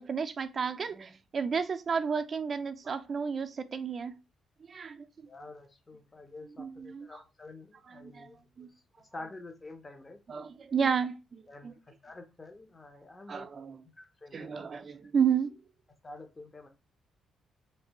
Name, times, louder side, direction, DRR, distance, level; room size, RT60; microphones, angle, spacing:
voice 1, 0.0-4.1 4.7-5.0 6.6-7.2 7.9-8.3 8.6-8.7 10.3-11.7 13.3-13.8 14.3-15.5, right 6 dB, 45° right, 0.4 m, -32 dB
voice 2, 5.3-8.7 9.1-10.2 11.5-11.7 12.0-13.5 14.0-14.6 16.0-16.7, left 2 dB, 25° left, 0.6 m, -48 dB
3.2 x 2.6 x 2.8 m
cardioid pair, 90°, 0 cm